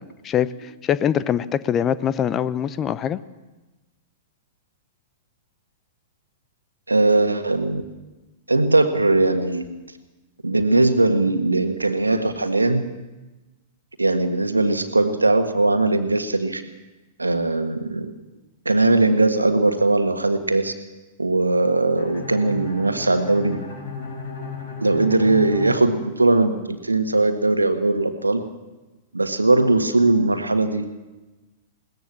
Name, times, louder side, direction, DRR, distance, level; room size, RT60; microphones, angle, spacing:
voice 1, 0.0-3.2, left 9 dB, 25° left, 16 dB, 0.8 m, -23 dB
voice 2, 6.9-7.8 8.5-9.7 10.4-12.9 14.0-16.6 17.2-18.1 18.6-20.7 21.2-23.6 24.8-28.4 29.1-30.9, right 2 dB, 85° right, 8 dB, 1.6 m, -19 dB
Bowed string instrument, 22.0-26.8, left 3 dB, 60° left, 5.9 m, -35 dB
21.5 x 18.0 x 7.3 m, 1.1 s
figure-of-eight pair, 100°, 0 cm